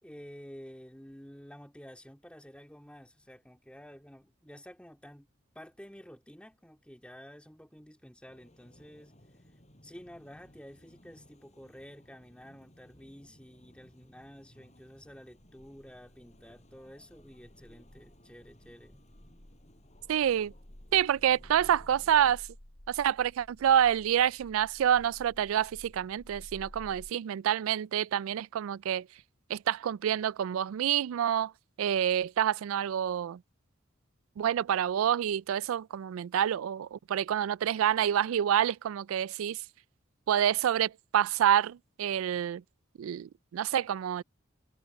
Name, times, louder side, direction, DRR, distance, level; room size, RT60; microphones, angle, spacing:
voice 1, 0.0-5.3 5.5-9.1 9.8-19.0, equal, 5° left, 2.4 m, -51 dB
sound 1, 8.3-22.3, equal, 35° left, 7.8 m, -60 dB
sound 2, 15.4-27.1, equal, 65° left, 3.6 m, -53 dB
voice 2, 20.1-20.5 20.9-22.5 22.9-29.1 29.5-31.5 31.8-33.4 34.4-39.6 40.3-42.6 43.0-44.2, right 10 dB, 80° right, 0.3 m, -27 dB
head